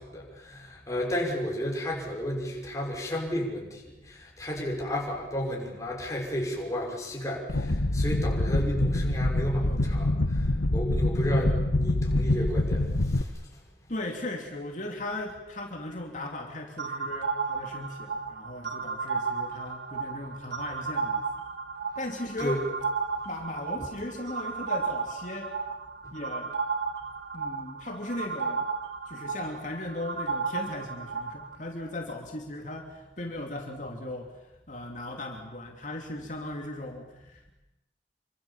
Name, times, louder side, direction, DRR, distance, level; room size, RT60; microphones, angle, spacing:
voice 1, 0.0-13.5 22.4-22.6 23.8-23.9 26.0-26.1, equal, 15° left, -1 dB, 5.8 m, -32 dB
sound 1, 7.5-13.2, left 1 dB, 85° left, 1.4 m, -26 dB
voice 2, 13.9-21.2 22.0-22.6 23.2-25.6 26.1-26.5 27.3-28.7 29.1-34.3 34.7-37.5, left 1 dB, 40° left, 2 dB, 2.8 m, -37 dB
sound 2, 16.8-31.6, right 5 dB, 70° right, 1.4 m, -33 dB
27.5 x 25.0 x 7.3 m, 0.97 s
head